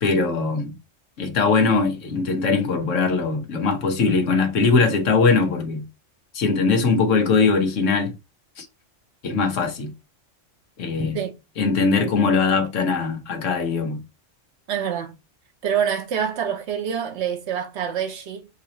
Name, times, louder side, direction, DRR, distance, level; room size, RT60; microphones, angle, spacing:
voice 1, 0.0-0.8 1.2-5.8 6.3-8.1 8.6-8.7 9.2-9.9 10.8-11.2 11.6-14.0, left 4 dB, 80° left, 1.3 m, -21 dB
voice 2, 14.7-15.1 15.6-18.5, right 8 dB, 65° right, 1.2 m, -26 dB
3.9 x 2.8 x 4.1 m
omnidirectional pair, 1.3 m